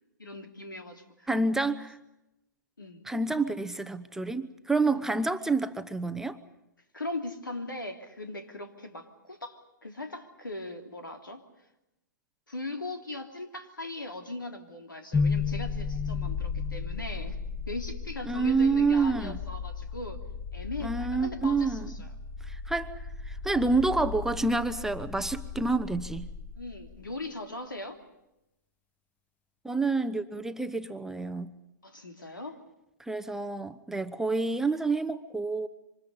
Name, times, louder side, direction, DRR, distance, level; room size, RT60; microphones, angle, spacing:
voice 1, 0.2-1.3 2.8-3.0 4.9-5.1 6.9-11.4 12.5-17.4 17.7-20.2 20.5-22.1 26.5-28.0 31.8-32.6, left 2 dB, 90° left, 3.1 m, -39 dB
voice 2, 1.3-2.0 3.1-6.4 18.3-19.4 20.8-21.9 22.5-22.9 23.3-26.3 29.6-31.5 33.1-35.7, right 3 dB, 5° right, 0.8 m, -28 dB
sound 1, 15.1-27.2, left 5 dB, 15° left, 1.3 m, -35 dB
27.0 x 25.5 x 5.5 m
figure-of-eight pair, 120°, 11 cm